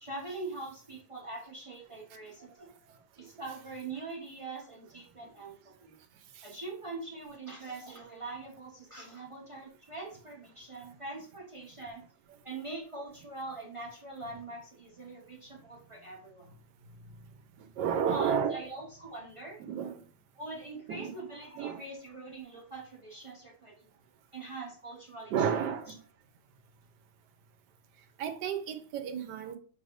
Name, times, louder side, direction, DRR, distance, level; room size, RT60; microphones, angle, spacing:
voice 1, 0.0-2.7 3.2-6.0 6.4-12.0 12.4-16.5 18.1-19.6 20.4-23.9 24.3-25.7, right 3 dB, 25° right, 0.7 m, -43 dB
voice 2, 17.6-18.6 19.6-20.0 20.9-21.2 21.5-21.9 25.3-26.0 28.2-29.6, right 7 dB, 85° right, 1.2 m, -32 dB
5.2 x 3.3 x 2.5 m
omnidirectional pair, 1.8 m